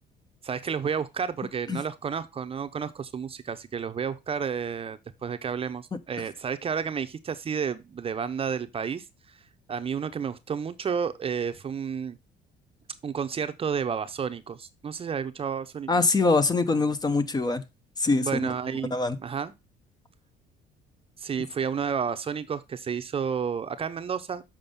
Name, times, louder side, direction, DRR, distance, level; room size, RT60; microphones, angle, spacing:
voice 1, 0.4-9.4 9.7-12.2 13.0-15.9 18.2-18.9 19.2-19.5 21.2-24.4, right 7 dB, 35° right, 0.8 m, -31 dB
voice 2, 15.9-17.6 18.0-18.4 18.9-19.2, left 3 dB, 25° left, 0.9 m, -23 dB
7.2 x 5.3 x 5.3 m
cardioid pair, 110°, 17 cm